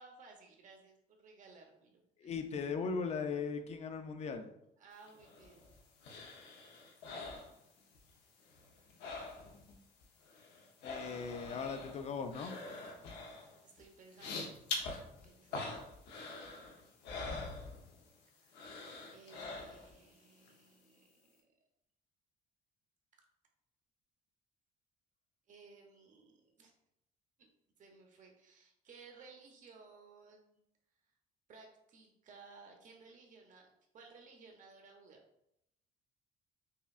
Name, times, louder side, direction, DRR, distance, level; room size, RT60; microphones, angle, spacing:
voice 1, 0.0-2.4 4.8-5.7 12.4-16.7 18.3-18.5 19.1-21.3 23.1-23.2 25.5-26.7 27.4-27.5 27.8-30.6 31.5-35.2, right 4 dB, 50° right, 2 dB, 0.9 m, -59 dB
voice 2, 2.2-4.5 10.8-12.6, left 5 dB, 40° left, 7 dB, 0.5 m, -38 dB
sound 1, 5.1-8.1 8.4-9.8 10.0-18.2 18.5-20.1 20.5-20.6, left 3 dB, 90° left, 0.8 m, -45 dB
5.5 x 2.3 x 2.4 m, 0.79 s
cardioid pair, 110°, 17 cm